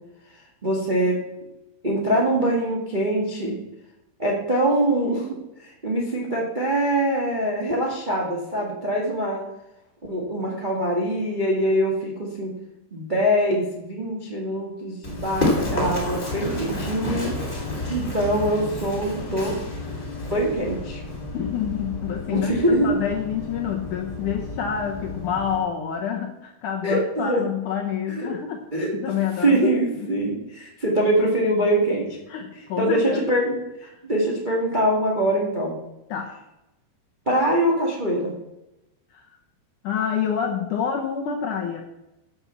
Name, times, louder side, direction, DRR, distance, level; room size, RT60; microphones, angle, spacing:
voice 1, 0.6-1.2 1.8-3.5 4.2-5.4 5.6-9.4 10.0-12.5 12.9-17.3 17.9-19.6 20.3-21.0 22.3-22.9 26.8-27.4 28.1-28.3 28.7-28.9 29.4-32.1 32.8-35.7 37.2-38.3, right 1 dB, 75° right, -2 dB, 0.4 m, -23 dB
Run, 15.0-25.6, left 2 dB, 20° left, 2.5 m, -30 dB
voice 2, 21.3-22.5 22.8-28.6 28.9-29.7 32.3-33.2 33.9-34.0 36.1-36.4 39.1-39.3 39.8-41.8, left 8 dB, 70° left, 2 dB, 1.9 m, -27 dB
10.0 x 6.9 x 7.1 m, 0.93 s
omnidirectional pair, 4.8 m